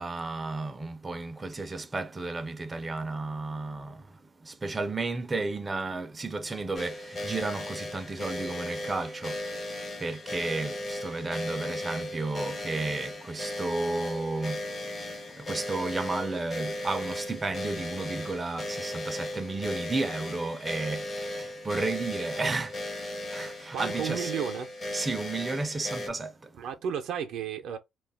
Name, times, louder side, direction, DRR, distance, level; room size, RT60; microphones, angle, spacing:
voice 1, 0.0-4.0 4.4-14.6 14.9-22.7 23.3-24.3 24.9-26.3, right 3 dB, 25° right, 0.4 m, -33 dB
sound 1, 6.7-26.1, left 1 dB, 35° left, 0.7 m, -36 dB
voice 2, 23.7-24.7 26.6-27.8, right 8 dB, 80° right, 0.5 m, -33 dB
2.3 x 2.1 x 3.3 m
cardioid pair, 90°, 0 cm